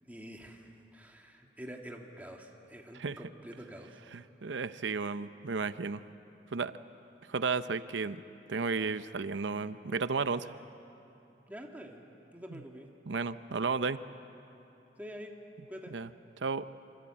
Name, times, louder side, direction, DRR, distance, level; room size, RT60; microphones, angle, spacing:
voice 1, 0.0-4.0 11.5-12.0 12.3-12.9 15.0-15.4 15.7-15.9, equal, 10° right, 1 dB, 1.8 m, -47 dB
voice 2, 4.1-6.0 6.5-6.7 7.3-8.2 8.5-10.5 12.5-12.6 13.1-14.0 15.9-16.1 16.4-16.7, right 4 dB, 75° right, 12 dB, 0.7 m, -33 dB
26.5 x 25.5 x 8.8 m, 2.8 s
head